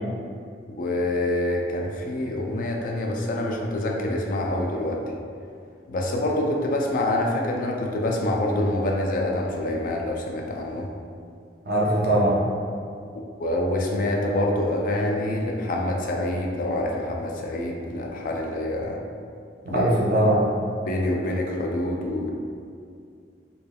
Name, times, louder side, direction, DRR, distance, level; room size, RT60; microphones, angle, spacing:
voice 1, 0.8-5.0 5.9-10.9 13.1-19.0 19.7-19.9 20.8-22.3, left 1 dB, 50° left, 0 dB, 0.3 m, -26 dB
voice 2, 11.7-12.4 19.6-20.5, right 1 dB, 60° right, -5 dB, 0.6 m, -21 dB
3.3 x 2.3 x 2.2 m, 2.3 s
head